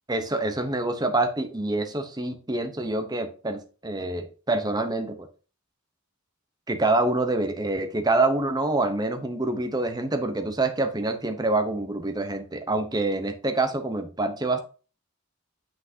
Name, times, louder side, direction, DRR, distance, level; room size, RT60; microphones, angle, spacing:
voice 1, 0.1-5.3 6.7-14.6, right 2 dB, 20° right, 7 dB, 0.9 m, -26 dB
7.7 x 6.1 x 2.8 m, 0.36 s
head